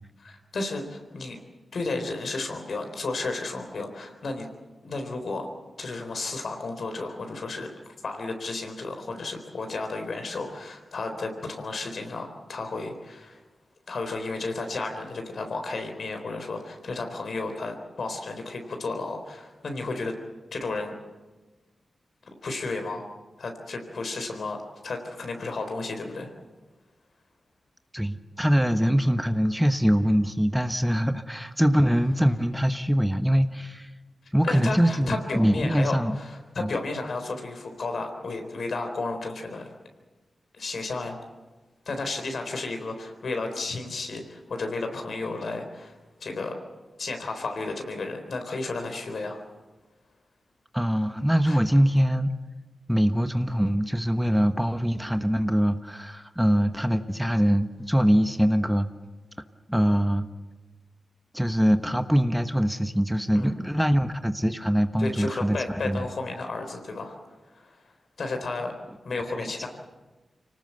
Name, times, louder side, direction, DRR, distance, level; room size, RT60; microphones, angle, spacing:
voice 1, 0.2-1.4 1.7-4.5 4.8-5.5 5.8-13.4 13.9-20.1 20.5-20.9 22.4-23.1 23.4-26.3 34.4-39.7 40.5-41.2 41.9-45.9 46.2-46.6 47.0-49.4 51.5-51.6 63.3-63.5 65.0-67.2 67.5-67.8 68.2-68.7 69.0-69.7, left 3 dB, 70° left, 5 dB, 4.0 m, -33 dB
voice 2, 27.9-33.9 34.3-36.2 36.6-36.7 50.7-52.3 52.9-58.9 59.7-60.3 61.3-65.6 65.8-66.1 69.3-69.7, equal, 5° right, 8 dB, 1.2 m, -23 dB
25.0 x 19.0 x 8.0 m, 1.2 s
cardioid pair, 45°, 0 cm